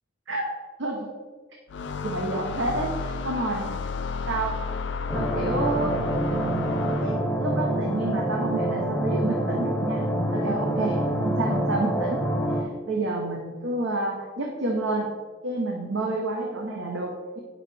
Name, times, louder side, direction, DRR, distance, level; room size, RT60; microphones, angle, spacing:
sound 1, 1.7-7.4, left 5 dB, 65° left, 0.4 m, -33 dB
voice 1, 2.0-3.8 4.3-4.6 5.1-6.0 7.0-12.3 12.6-15.1 15.4-17.4, right 2 dB, 80° right, 0 dB, 0.9 m, -29 dB
sound 2, 5.1-12.6, right 1 dB, 10° left, 0.8 m, -26 dB
9.0 x 6.4 x 3.3 m, 1.5 s
head